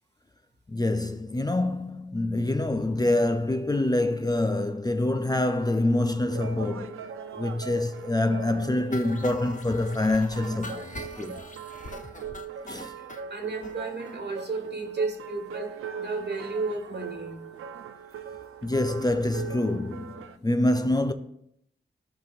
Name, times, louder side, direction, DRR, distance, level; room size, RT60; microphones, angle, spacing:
voice 1, 0.7-7.0 7.4-11.4 12.6-13.0 18.6-21.1, left 2 dB, 20° left, 0.5 m, -26 dB
sound 1, 6.3-20.4, right 6 dB, 80° right, 0.4 m, -40 dB
sound 2, 8.9-13.2 13.6-13.7 14.1-14.2 14.4-14.5 14.8-14.9, left 2 dB, 40° left, 0.8 m, -42 dB
voice 2, 13.3-17.6, right 3 dB, 55° right, 1.5 m, -33 dB
14.0 x 5.1 x 2.5 m
cardioid pair, 45°, 21 cm